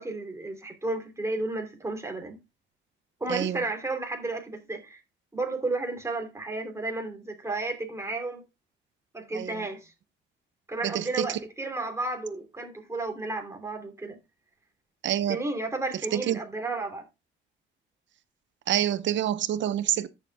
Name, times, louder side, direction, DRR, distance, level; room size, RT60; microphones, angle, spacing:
voice 1, 0.0-2.4 3.2-5.0 5.3-8.4 9.1-9.9 10.7-14.2 15.3-17.0, right 2 dB, 15° right, 2.9 m, -32 dB
voice 2, 3.3-3.6 9.3-9.6 10.8-11.3 15.0-15.4 16.1-16.4 18.7-20.1, right 11 dB, 70° right, 0.9 m, -27 dB
14.0 x 7.4 x 2.3 m
cardioid pair, 90°, 20 cm